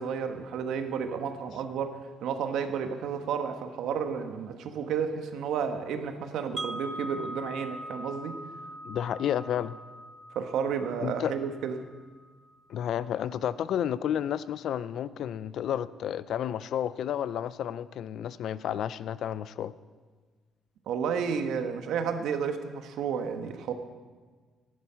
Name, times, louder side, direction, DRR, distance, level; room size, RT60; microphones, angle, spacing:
voice 1, 0.0-8.4 10.3-11.8 20.9-23.7, right 6 dB, 70° right, 7 dB, 1.2 m, -32 dB
Wind chime, 6.6-12.5, right 1 dB, 15° right, 0.7 m, -42 dB
voice 2, 8.8-9.8 11.0-11.3 12.7-19.7, left 10 dB, 55° left, 16 dB, 0.4 m, -31 dB
14.5 x 11.5 x 5.6 m, 1.5 s
cardioid pair, 175°, 0 cm